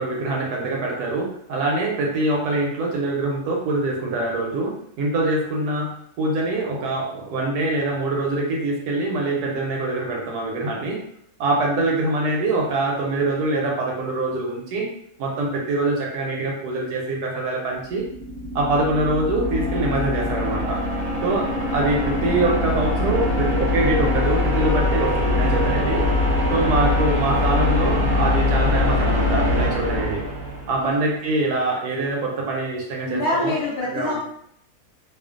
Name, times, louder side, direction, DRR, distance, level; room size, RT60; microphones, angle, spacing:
voice 1, 0.0-11.0 11.4-14.9 15.2-18.0 18.5-20.8 21.2-26.1 26.5-30.2 30.7-33.5 33.8-34.2, right 2 dB, 80° right, -1 dB, 1.1 m, -24 dB
sound 1, 17.9-31.0, left 2 dB, 35° right, 0.9 m, -22 dB
voice 2, 33.1-34.2, left 2 dB, 85° left, -5 dB, 0.6 m, -25 dB
2.5 x 2.4 x 2.4 m, 0.70 s
omnidirectional pair, 1.7 m